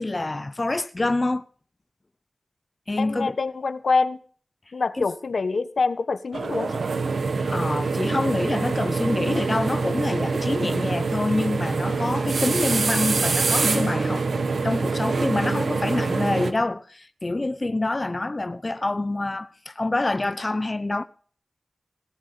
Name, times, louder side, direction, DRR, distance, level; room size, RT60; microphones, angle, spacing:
voice 1, 0.0-1.5 2.9-3.4 5.0-5.1 7.4-21.0, left 2 dB, 35° left, 0.8 m, -26 dB
voice 2, 3.0-4.2 4.7-6.8, left 4 dB, 80° left, 1.2 m, -25 dB
sound 1, 6.3-16.5, right 4 dB, 85° right, 1.5 m, -25 dB
18.0 x 7.5 x 6.8 m
wide cardioid pair, 60°, 0 cm